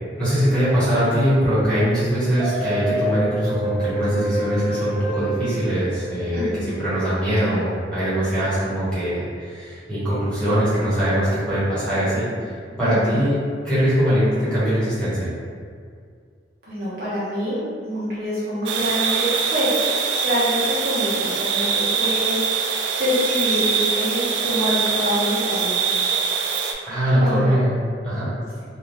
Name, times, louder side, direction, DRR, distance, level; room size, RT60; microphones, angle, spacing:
voice 1, 0.2-12.3 12.8-13.4 13.6-15.3 26.9-27.7 28.0-28.3, equal, 5° left, -13 dB, 1.1 m, -21 dB
sound 1, 2.3-6.6, right 1 dB, 30° right, 0.5 m, -27 dB
voice 2, 6.3-6.7 12.8-13.2 16.6-19.7 20.2-25.7 27.2-27.6, equal, 60° right, -10 dB, 1.1 m, -26 dB
sound 2, 18.7-26.7, right 6 dB, 85° right, 0.3 m, -23 dB
2.8 x 2.3 x 3.4 m, 2.1 s
head